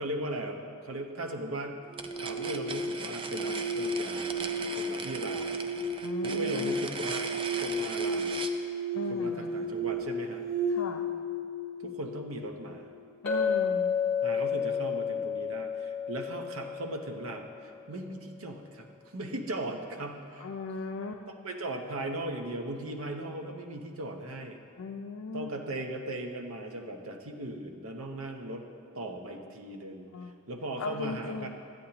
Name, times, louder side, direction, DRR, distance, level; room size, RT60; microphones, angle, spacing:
voice 1, 0.0-1.8 2.2-5.5 6.2-7.3 7.5-8.4 9.1-10.4 11.8-12.9 14.2-18.9 19.1-20.5 21.4-24.6 25.3-28.6 28.9-30.1 30.5-31.5, right 1 dB, 70° right, 3 dB, 0.8 m, -38 dB
sound 1, 1.9-8.6, right 4 dB, 25° right, 0.4 m, -39 dB
sound 2, 1.9-12.9, right 1 dB, 40° right, 2.3 m, -33 dB
voice 2, 6.0-6.8 8.9-9.5 10.7-11.1 13.2-14.0 20.4-21.2 24.8-25.5 30.1-30.4 30.8-31.5, left 4 dB, 70° left, 2 dB, 0.4 m, -38 dB
Chink clink, 13.3-17.4, left 6 dB, 10° left, 1.9 m, -30 dB
13.0 x 9.0 x 2.9 m, 2.3 s
head